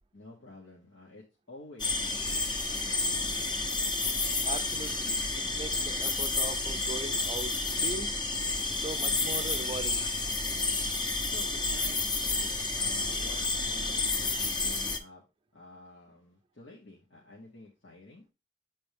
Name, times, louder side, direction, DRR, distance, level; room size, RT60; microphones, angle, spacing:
voice 1, 0.1-3.6 11.3-15.2 15.5-18.3, left 2 dB, 85° left, 1.8 m, -50 dB
sound 1, 1.8-15.0, left 3 dB, 25° left, 0.7 m, -30 dB
voice 2, 4.4-8.2 8.7-10.0, right 3 dB, 30° right, 0.5 m, -40 dB
7.8 x 4.3 x 3.5 m
head